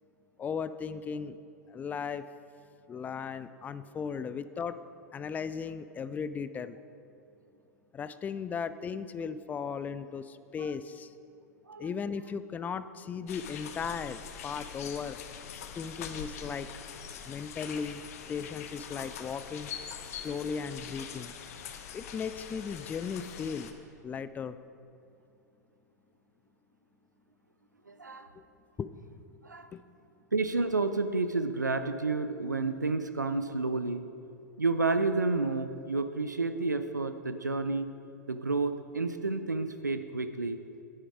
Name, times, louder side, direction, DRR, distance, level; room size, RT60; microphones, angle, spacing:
voice 1, 0.4-1.4 1.7-2.3 2.9-4.8 5.1-6.8 7.9-11.1 11.8-15.2 15.7-16.7 17.3-18.0 18.3-19.7 20.1-21.4 21.9-23.7 24.0-24.6 28.3-28.4 28.8-28.9 29.7-29.8, left 6 dB, 15° left, 13 dB, 0.4 m, -36 dB
sound 1, 13.3-23.7, left 8 dB, 55° left, 0.9 m, -43 dB
voice 2, 27.9-28.3 29.4-29.7 30.3-34.0 34.6-37.9 38.3-40.6, right 3 dB, 85° right, 10 dB, 0.5 m, -30 dB
10.0 x 9.0 x 4.9 m, 2.6 s
figure-of-eight pair, 90°, 9 cm